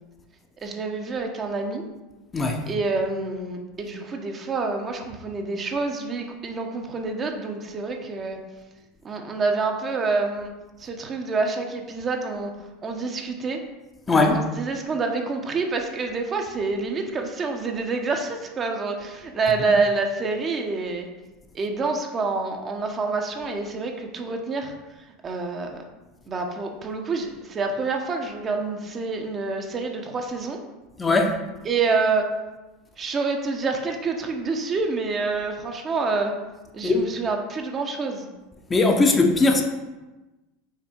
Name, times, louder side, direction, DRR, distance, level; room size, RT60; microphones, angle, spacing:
voice 1, 0.6-1.8 2.7-8.4 9.0-10.5 10.8-12.5 12.8-13.6 14.1-21.1 21.5-24.7 25.2-25.9 26.3-30.6 31.6-32.3 33.0-36.3 36.7-38.3, right 4 dB, 30° right, 1.0 m, -27 dB
voice 2, 14.1-14.4 31.0-31.4 36.8-37.1 38.7-39.6, left 3 dB, 20° left, 0.9 m, -19 dB
5.9 x 4.3 x 4.5 m
figure-of-eight pair, 80°, 0 cm